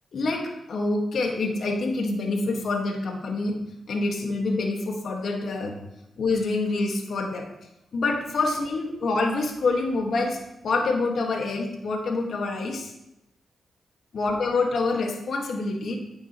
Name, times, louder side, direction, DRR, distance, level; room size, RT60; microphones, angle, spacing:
voice 1, 0.1-3.6 3.9-5.8 6.2-7.5 7.9-10.4 10.6-12.9 14.1-16.0, left 3 dB, 70° left, 2 dB, 1.9 m, -26 dB
10.0 x 7.7 x 3.2 m, 0.89 s
supercardioid pair, 45°, 0 cm